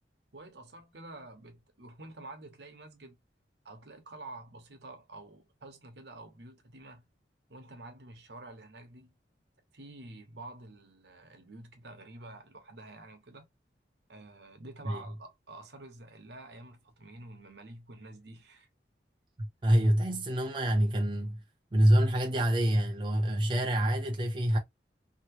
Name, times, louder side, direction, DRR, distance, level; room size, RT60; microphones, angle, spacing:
voice 1, 0.3-3.2 3.6-7.0 7.5-9.1 9.7-13.5 14.1-18.7, right 2 dB, 70° right, 1.0 m, -48 dB
voice 2, 19.4-21.4 21.7-24.6, right 1 dB, 25° right, 0.5 m, -26 dB
2.9 x 2.8 x 2.9 m
head